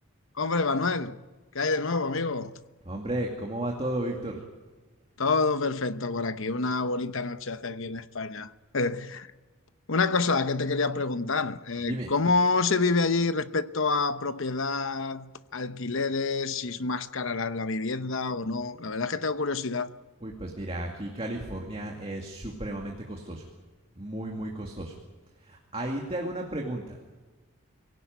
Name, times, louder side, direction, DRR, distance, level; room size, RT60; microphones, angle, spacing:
voice 1, 0.4-1.2 1.5-2.5 5.2-9.3 9.9-19.9, left 3 dB, 60° left, 0.9 m, -28 dB
voice 2, 2.9-4.4 11.9-12.1 20.2-23.4 24.0-24.9 25.4-27.0, right 1 dB, 25° right, 2.3 m, -33 dB
25.5 x 17.5 x 9.4 m
head